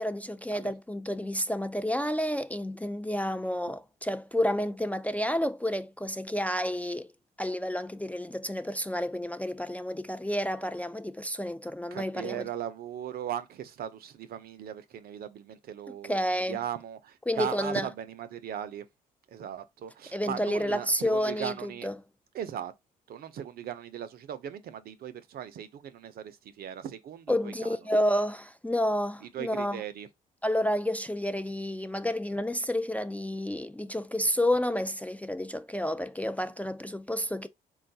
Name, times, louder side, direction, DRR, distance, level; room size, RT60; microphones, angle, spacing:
voice 1, 0.0-7.1 7.4-12.5 15.9-16.6 17.3-17.9 20.1-21.9 27.3-29.8 30.4-37.5, equal, 10° left, 0.3 m, -30 dB
voice 2, 11.9-16.2 16.5-18.9 19.3-21.9 22.3-22.7 23.1-27.8 29.3-30.1, right 9 dB, 60° right, 0.5 m, -38 dB
3.7 x 2.3 x 2.7 m
supercardioid pair, 60°, 18 cm